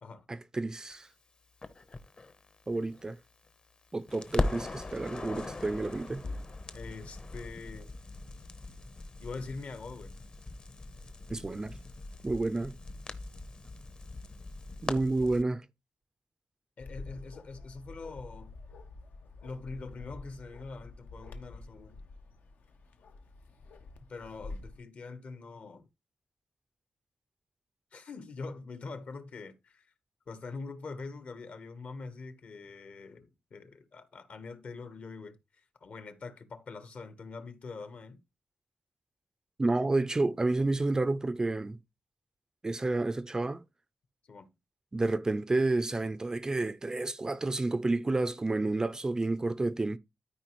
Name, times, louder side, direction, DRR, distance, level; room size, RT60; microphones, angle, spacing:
voice 1, 0.3-1.1 2.7-3.2 3.9-6.2 11.3-11.8 12.2-12.7 14.8-15.7 39.6-41.8 42.6-43.6 44.9-50.0, right 2 dB, 20° right, 0.4 m, -30 dB
Crackle, 1.6-3.8 4.1-15.4, left 2 dB, 35° left, 0.8 m, -40 dB
voice 2, 6.7-7.9 9.2-10.1 16.8-18.5 19.4-22.0 24.1-25.9 27.9-29.9 30.3-35.4 35.8-38.2 44.3-44.5, left 4 dB, 55° left, 1.2 m, -44 dB
Bark, 16.8-24.8, left 3 dB, 80° left, 1.0 m, -48 dB
13.0 x 4.9 x 3.0 m
wide cardioid pair, 135°, 3 cm